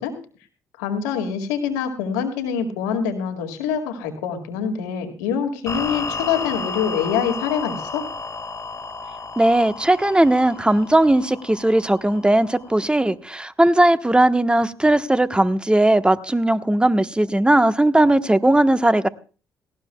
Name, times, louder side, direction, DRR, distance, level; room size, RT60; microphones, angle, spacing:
voice 1, 0.8-8.1, left 7 dB, 85° left, 2.1 m, -25 dB
sound 1, 5.7-12.8, left 4 dB, 35° left, 2.2 m, -33 dB
voice 2, 9.4-19.1, right 1 dB, 10° right, 1.2 m, -18 dB
18.5 x 17.5 x 2.3 m
hypercardioid pair, 45°, 9 cm